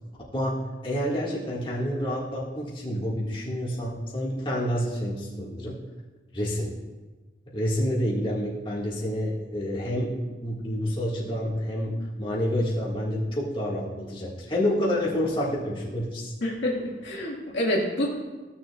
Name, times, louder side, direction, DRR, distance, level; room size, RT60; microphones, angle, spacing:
voice 1, 0.3-5.8 6.3-6.8 7.5-10.1 10.4-16.3, equal, 30° left, -6 dB, 1.8 m, -28 dB
voice 2, 16.4-18.1, left 1 dB, 90° left, -3 dB, 1.8 m, -27 dB
15.0 x 6.9 x 2.4 m, 1.3 s
head